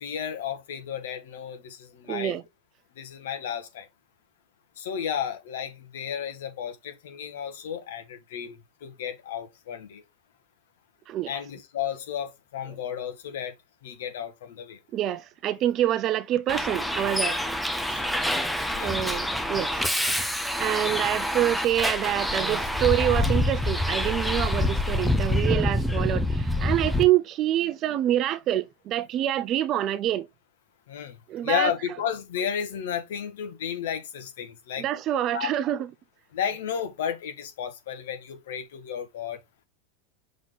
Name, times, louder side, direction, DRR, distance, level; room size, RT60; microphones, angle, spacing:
voice 1, 0.0-2.4 3.0-3.9 4.8-8.6 8.8-10.0 11.3-13.5 13.8-14.8 17.9-18.1 18.7-18.9 20.8-20.9 30.9-31.2 31.4-34.9 35.3-35.5 36.3-39.4, left 8 dB, 85° left, 2.0 m, -33 dB
voice 2, 2.1-2.4 11.1-11.3 14.9-17.4 18.8-19.7 20.6-30.3 31.3-31.7 34.8-35.8, right 12 dB, 35° right, 0.6 m, -26 dB
Bus, 16.5-27.0, left 1 dB, ahead, 0.7 m, -26 dB
6.1 x 4.2 x 4.1 m
supercardioid pair, 150°, 0 cm